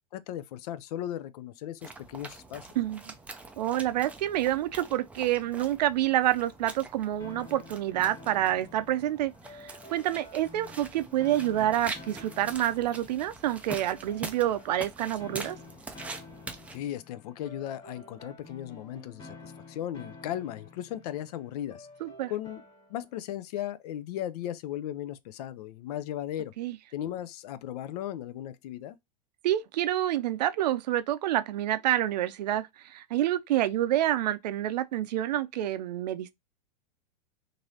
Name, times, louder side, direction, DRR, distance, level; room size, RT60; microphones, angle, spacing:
voice 1, 0.1-2.7 16.7-21.9 22.3-22.6 22.9-26.5 26.9-29.0, left 12 dB, 65° left, 0.5 m, -36 dB
sound 1, 1.8-16.8, right 3 dB, 5° right, 0.4 m, -44 dB
voice 2, 2.8-3.1 3.6-15.6 22.0-22.3 26.6-26.8 29.4-36.3, right 13 dB, 80° right, 0.5 m, -28 dB
sound 2, 7.2-23.1, left 3 dB, 20° left, 1.4 m, -50 dB
3.0 x 2.6 x 2.7 m
hypercardioid pair, 120°, 21 cm